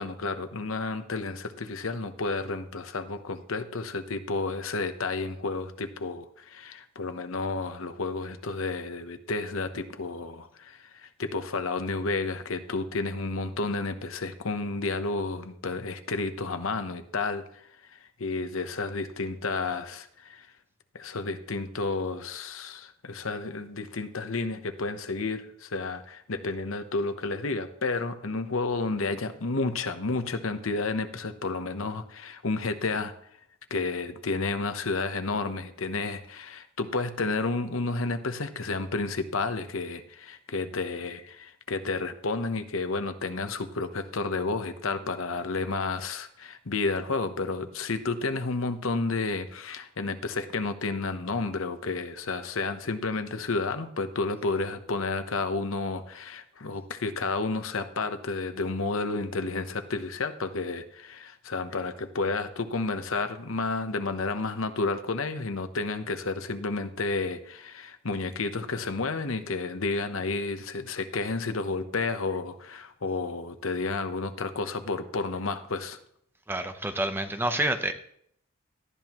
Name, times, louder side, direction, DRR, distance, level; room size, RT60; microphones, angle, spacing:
voice 1, 0.0-20.5 20.9-33.1 33.7-76.0, left 3 dB, 70° left, 9 dB, 0.9 m, -31 dB
voice 2, 76.5-77.9, right 1 dB, 10° right, 8 dB, 0.7 m, -28 dB
18.0 x 12.5 x 3.0 m, 0.69 s
head